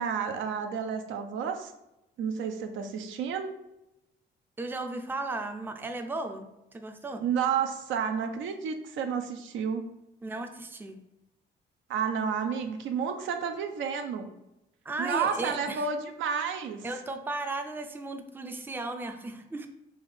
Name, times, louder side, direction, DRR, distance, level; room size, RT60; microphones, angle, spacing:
voice 1, 0.0-1.7 2.2-3.5 7.2-9.9 11.9-14.3 15.0-16.9, right 6 dB, 75° right, 5 dB, 0.5 m, -31 dB
voice 2, 4.6-6.5 6.7-7.2 10.2-11.0 14.9-15.9 16.8-19.7, right 2 dB, 10° right, 6 dB, 0.4 m, -35 dB
3.4 x 2.7 x 3.4 m, 0.90 s
cardioid pair, 90°, 20 cm